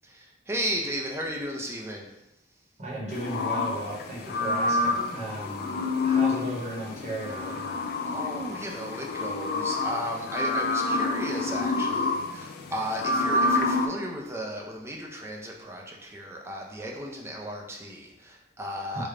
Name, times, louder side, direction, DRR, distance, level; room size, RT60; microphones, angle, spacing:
voice 1, 0.0-2.1 8.0-19.1, equal, 15° right, -1 dB, 0.5 m, -35 dB
voice 2, 2.8-7.8 18.9-19.0, right 1 dB, 40° right, -5 dB, 1.0 m, -36 dB
sound 1, 3.1-13.9, left 3 dB, 55° left, 0.3 m, -28 dB
3.2 x 2.2 x 3.7 m, 0.93 s
head